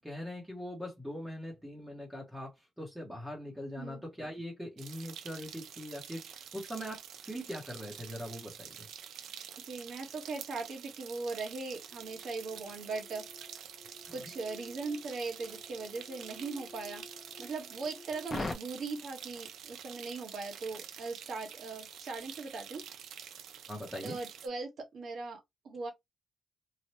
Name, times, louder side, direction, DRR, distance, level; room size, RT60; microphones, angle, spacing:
voice 1, 0.0-8.9 14.0-14.1 23.7-24.2, equal, 5° right, 0.8 m, -42 dB
sound 1, 4.8-24.5, right 9 dB, 80° right, 0.5 m, -48 dB
sound 2, 9.2-9.4 9.8-9.9 11.6-18.5, left 3 dB, 20° left, 0.5 m, -47 dB
voice 2, 9.6-13.2 14.1-17.0 17.4-22.8 24.0-25.4 25.6-25.9, right 3 dB, 55° right, 1.2 m, -39 dB
3.1 x 2.1 x 2.8 m
cardioid pair, 140°, 0 cm